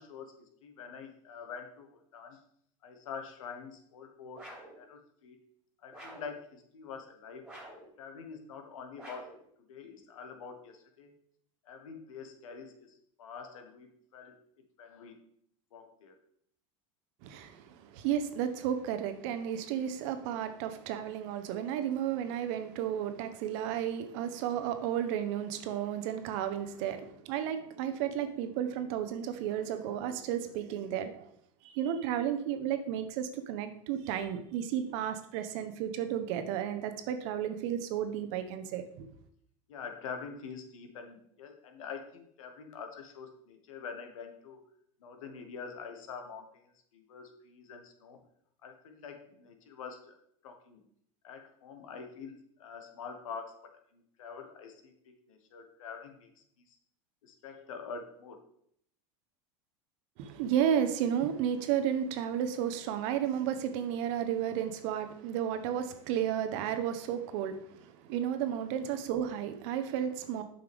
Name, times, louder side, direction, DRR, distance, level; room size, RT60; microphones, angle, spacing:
voice 1, 0.0-2.4 2.8-5.4 5.8-7.5 8.0-9.3 9.7-11.1 11.6-15.2 15.7-16.2 39.7-44.7 45.0-48.2 48.6-50.8 51.2-53.6 53.9-56.8 57.2-58.4 68.9-69.0, left 5 dB, 80° left, 6 dB, 1.3 m, -46 dB
sound 1, 4.3-4.8 5.9-6.4 7.4-7.9 9.0-9.4, right 1 dB, 5° right, 2.9 m, -48 dB
voice 2, 17.2-31.3 31.6-39.1 60.2-70.4, right 9 dB, 65° right, 9 dB, 0.9 m, -33 dB
7.7 x 5.7 x 3.5 m, 0.68 s
hypercardioid pair, 95°, 17 cm